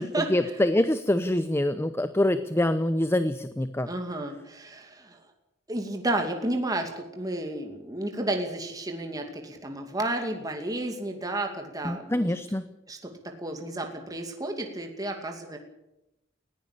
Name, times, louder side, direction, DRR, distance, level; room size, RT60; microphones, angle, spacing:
voice 1, 0.3-3.9 11.8-12.7, left 1 dB, 15° left, 11 dB, 0.7 m, -25 dB
voice 2, 3.9-5.2 5.7-12.3 12.9-15.6, right 1 dB, 20° right, 3 dB, 2.4 m, -32 dB
19.5 x 16.0 x 8.5 m, 0.90 s
head